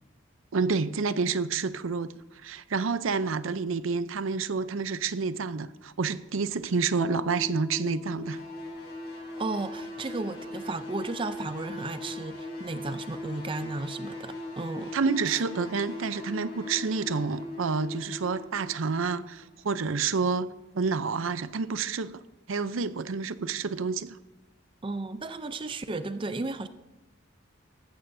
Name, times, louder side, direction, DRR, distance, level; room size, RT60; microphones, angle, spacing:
voice 1, 0.5-2.1 2.4-8.4 14.9-22.2 22.5-24.2, right 5 dB, 80° right, 14 dB, 0.6 m, -29 dB
sound 1, 7.0-19.5, left 1 dB, 15° left, 1.3 m, -40 dB
sound 2, 8.2-20.5, left 3 dB, 55° left, 4.1 m, -49 dB
voice 2, 9.4-14.9 15.3-15.4 24.8-26.7, right 3 dB, 25° right, 11 dB, 0.5 m, -34 dB
18.0 x 15.0 x 2.7 m, 1.0 s
head